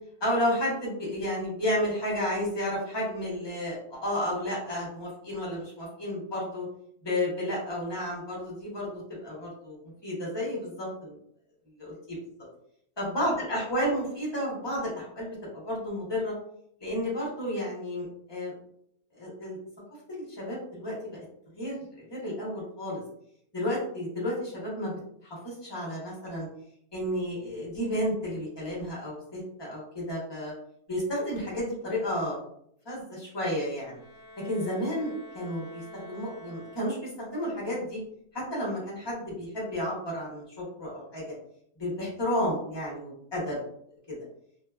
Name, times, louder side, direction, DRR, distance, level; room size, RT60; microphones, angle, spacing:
voice 1, 0.2-6.7 7.0-8.9 9.2-11.2 11.8-12.2 13.0-15.3 15.5-16.3 16.8-18.5 19.1-19.6 20.1-21.2 21.5-23.0 23.5-24.9 25.2-26.5 26.9-30.5 30.9-32.4 32.9-34.0 34.4-38.0 38.3-41.2 41.8-43.6 44.1-44.2, left 1 dB, 25° left, -5 dB, 0.5 m, -32 dB
Bowed string instrument, 33.9-37.4, equal, 50° right, 0.4 m, -48 dB
2.6 x 2.2 x 2.2 m, 0.70 s
omnidirectional pair, 1.6 m